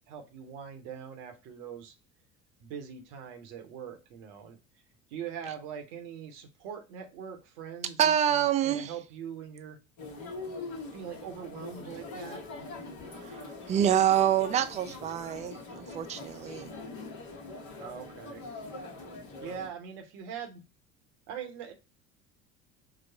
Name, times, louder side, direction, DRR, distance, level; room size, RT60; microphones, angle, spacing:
voice 1, 0.1-1.9 2.6-4.6 5.1-9.8 10.9-12.7 14.9-15.1 17.8-18.4 19.4-20.6 21.3-21.7, right 8 dB, 60° right, 0.9 m, -42 dB
voice 2, 8.0-8.9 13.1-16.7, right 10 dB, 20° right, 0.3 m, -27 dB
sound 1, 10.0-19.7, left 3 dB, 55° left, 1.1 m, -43 dB
4.9 x 2.0 x 2.6 m
figure-of-eight pair, 65°, 41 cm